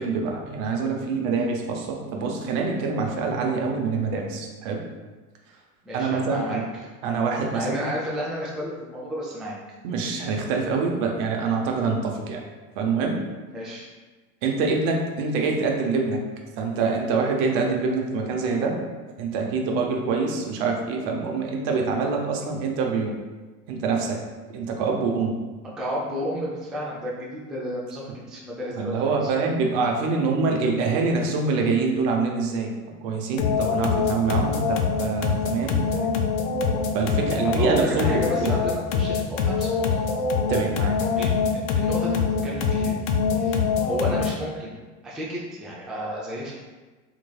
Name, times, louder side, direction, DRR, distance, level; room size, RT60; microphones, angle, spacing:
voice 1, 0.0-4.8 5.9-6.7 7.0-7.9 9.8-12.4 12.8-13.2 14.4-16.2 16.6-18.8 19.2-23.2 23.7-24.2 24.5-25.4 28.8-32.7 33.0-36.1 36.9-38.5 40.5-40.9, right 4 dB, 60° right, 1 dB, 0.8 m, -25 dB
voice 2, 5.8-6.9 7.5-9.6 13.5-13.9 25.8-29.3 37.4-40.1 41.2-42.9 43.4-44.8 45.0-46.5, equal, ahead, -5 dB, 0.4 m, -32 dB
sound 1, 33.4-44.5, left 5 dB, 65° left, 0.6 m, -24 dB
3.7 x 3.0 x 2.3 m, 1.3 s
hypercardioid pair, 90°, 45 cm